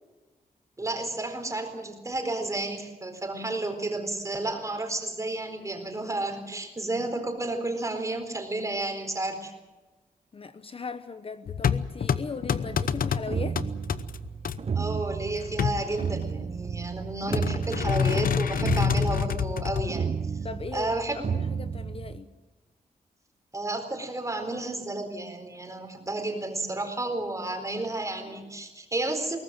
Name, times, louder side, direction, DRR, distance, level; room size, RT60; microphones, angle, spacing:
voice 1, 0.8-9.5 14.7-20.2 20.7-21.2 23.5-29.4, right 2 dB, 20° right, 5 dB, 4.2 m, -31 dB
voice 2, 10.3-13.6 20.4-22.3, left 4 dB, 40° left, 11 dB, 1.0 m, -38 dB
sound 1, 11.5-14.6 15.4-16.4 17.3-20.0, left 7 dB, 70° left, 0.9 m, -27 dB
sound 2, 12.7-22.2, right 6 dB, 45° right, 0.8 m, -33 dB
22.5 x 18.5 x 7.7 m, 1.2 s
wide cardioid pair, 125°, 15 cm